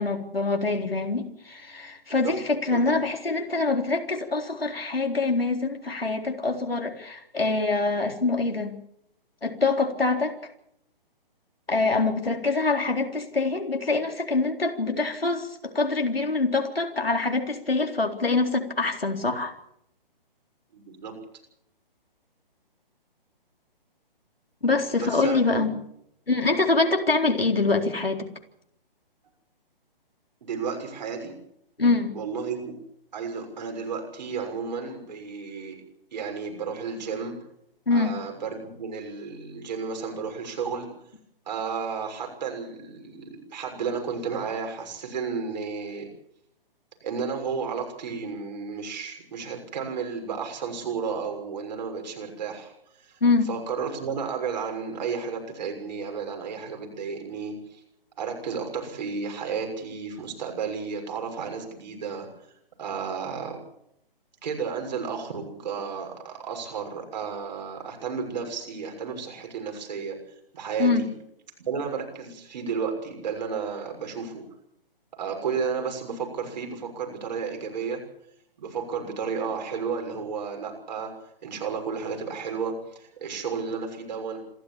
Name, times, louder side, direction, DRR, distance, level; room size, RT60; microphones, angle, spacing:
voice 1, 0.0-8.7 9.4-10.4 11.7-19.5 24.6-25.7 26.3-28.3 31.8-32.1 37.9-38.1 53.2-53.5 70.8-71.0, left 3 dB, 80° left, 3 dB, 4.0 m, -25 dB
voice 2, 20.7-21.1 25.0-25.7 30.4-31.3 32.1-32.7 33.1-35.8 36.1-37.4 37.9-40.9 41.5-46.1 47.0-52.7 53.1-53.2 53.5-57.8 58.2-62.3 62.8-63.6 64.4-70.2 70.5-71.1 71.6-74.4 75.1-78.0 78.6-81.1 81.4-84.4, right 5 dB, 50° right, 3 dB, 6.5 m, -32 dB
27.0 x 13.0 x 8.6 m, 0.75 s
figure-of-eight pair, 135°, 29 cm